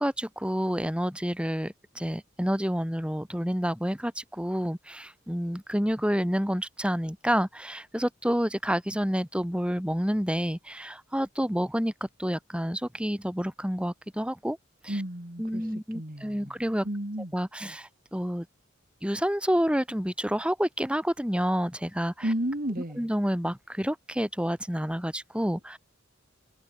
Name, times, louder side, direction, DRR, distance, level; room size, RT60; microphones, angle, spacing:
voice 1, 0.0-14.6 14.8-15.0 15.4-16.9 17.3-18.5 19.0-22.3 23.0-25.8, equal, 5° right, 7.3 m, -29 dB
voice 2, 14.9-15.7 15.9-16.5 16.8-17.3 22.2-23.1, right 1 dB, 45° right, 3.0 m, -32 dB
head